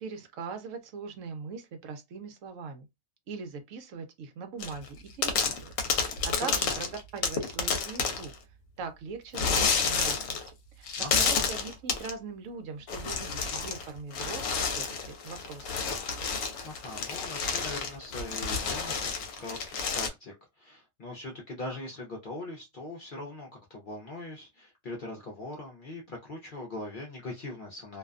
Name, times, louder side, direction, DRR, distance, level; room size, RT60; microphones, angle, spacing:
voice 1, 0.0-2.9 3.3-5.7 6.0-6.9 7.1-8.3 8.8-10.4 10.8-15.7, right 5 dB, 70° right, 0.9 m, -41 dB
sound 1, 4.6-4.9 5.2-8.3 9.3-10.5 10.9-12.1 12.9-13.9 14.1-20.1, left 5 dB, 75° left, 1.0 m, -30 dB
voice 2, 6.5-6.8 11.0-11.5 16.6-28.0, left 2 dB, 50° left, 0.6 m, -41 dB
2.5 x 2.2 x 2.4 m
omnidirectional pair, 1.4 m